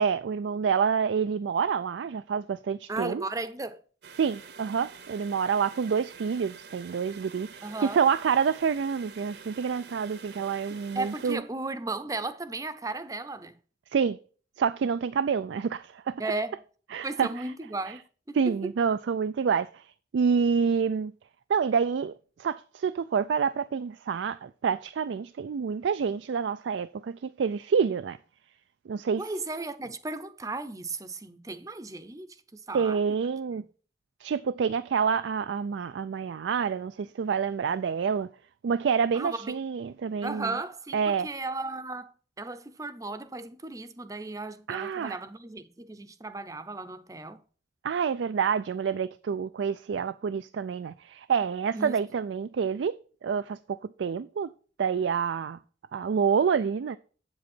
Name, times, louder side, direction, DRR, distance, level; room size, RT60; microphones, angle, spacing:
voice 1, 0.0-3.2 4.2-11.4 13.9-14.2 14.6-16.2 16.9-17.5 17.9-18.0 18.3-19.9 20.1-21.1 21.5-22.1 22.4-28.2 28.9-29.2 32.7-33.6 34.2-38.3 38.6-40.5 40.9-41.3 44.7-45.2 47.8-53.0 53.2-54.5 54.8-55.6 55.9-57.0, right 6 dB, 85° right, 0.4 m, -27 dB
voice 2, 2.9-3.8 7.6-8.0 10.7-13.5 16.2-16.6 17.0-18.7 29.2-33.0 39.1-39.6 40.2-47.4 51.7-52.0, right 2 dB, 20° right, 0.6 m, -35 dB
sound 1, 4.0-11.3, right 6 dB, 65° right, 0.9 m, -47 dB
8.0 x 7.7 x 4.4 m
head